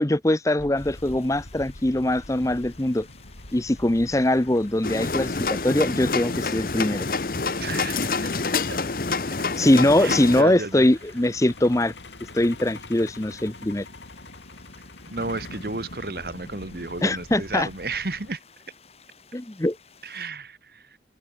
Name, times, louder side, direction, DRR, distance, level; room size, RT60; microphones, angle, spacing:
voice 1, 0.0-3.1 3.5-7.1 9.6-11.9 12.3-13.8 17.0-17.7 19.3-19.8, left 1 dB, 20° left, 0.7 m, -22 dB
Truck, 0.6-18.4, left 2 dB, 90° left, 4.0 m, -44 dB
sound 1, 0.7-20.3, left 6 dB, 35° left, 4.0 m, -54 dB
sound 2, 4.8-10.4, left 4 dB, 50° left, 0.9 m, -27 dB
voice 2, 7.6-8.3 8.7-8.8 10.0-10.9 15.1-18.4 20.0-21.0, right 3 dB, 55° right, 1.5 m, -33 dB
open air
head